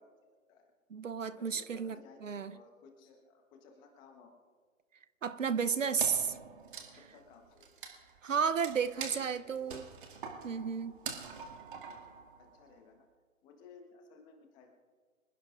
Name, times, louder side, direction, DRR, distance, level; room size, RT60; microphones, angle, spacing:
voice 1, 0.0-0.7 1.3-4.3 5.4-6.1 6.9-7.7 8.5-9.9 11.8-12.0 12.4-13.1 13.4-14.7, left 4 dB, 10° left, 3 dB, 1.0 m, -58 dB
voice 2, 0.9-2.5 5.2-6.2 8.2-9.8 10.4-11.0, right 6 dB, 65° right, 14 dB, 0.8 m, -33 dB
Wood, 6.0-12.7, right 6 dB, 35° right, 2.1 m, -45 dB
26.0 x 16.0 x 2.5 m, 1.5 s
figure-of-eight pair, 145°, 42 cm